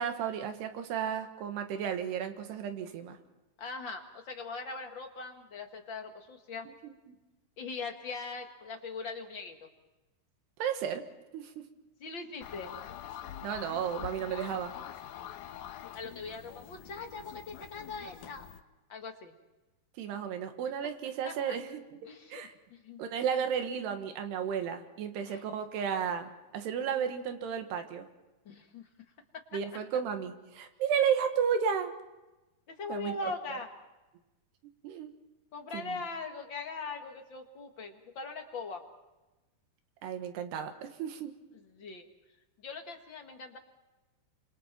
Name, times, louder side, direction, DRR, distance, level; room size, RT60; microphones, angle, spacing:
voice 1, 0.0-3.2 6.8-7.2 10.6-11.0 11.3-11.5 13.4-14.7 20.0-21.8 22.3-22.5 23.0-28.1 29.5-31.9 32.9-33.6 34.8-35.1 35.7-36.0 40.0-41.3, right 7 dB, 90° right, 7 dB, 3.6 m, -33 dB
voice 2, 3.6-6.7 7.6-9.6 12.0-12.7 15.9-18.5 18.9-19.3 20.6-20.7 21.2-21.6 22.0-23.0 25.2-25.4 28.4-28.9 29.3-29.4 32.7-33.7 35.5-38.8 41.7-42.0 42.6-43.6, left 4 dB, 45° left, 3 dB, 1.6 m, -41 dB
sound 1, 12.4-18.6, left 10 dB, 75° left, 1.9 m, -45 dB
28.0 x 26.5 x 4.5 m, 1.1 s
omnidirectional pair, 4.6 m